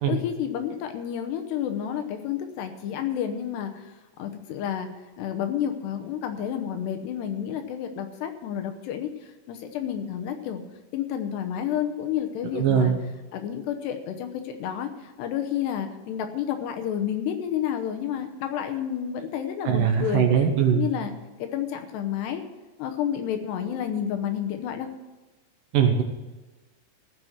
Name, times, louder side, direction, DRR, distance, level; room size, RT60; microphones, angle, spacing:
voice 1, 0.0-3.8 4.2-4.9 5.2-9.1 9.5-10.6 10.9-12.9 13.3-20.3 20.7-21.1 21.4-22.4 22.8-24.9, left 9 dB, 75° left, 6 dB, 3.0 m, -30 dB
voice 2, 12.5-13.0 19.7-20.9 25.7-26.0, right 8 dB, 70° right, 4 dB, 2.2 m, -21 dB
15.5 x 6.1 x 7.9 m, 1.2 s
omnidirectional pair, 5.0 m